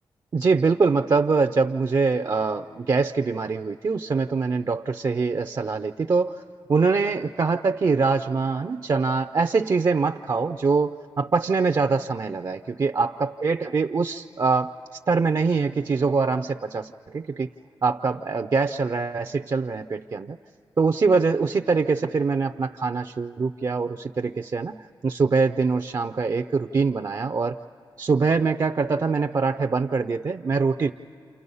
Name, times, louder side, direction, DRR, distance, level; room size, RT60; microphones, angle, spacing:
voice 1, 0.3-6.4 6.7-14.7 15.1-17.5 17.8-20.4 20.8-27.6 28.0-30.9, right 4 dB, 45° right, 7 dB, 0.5 m, -23 dB
29.0 x 28.0 x 5.5 m, 2.6 s
cardioid pair, 80°, 9 cm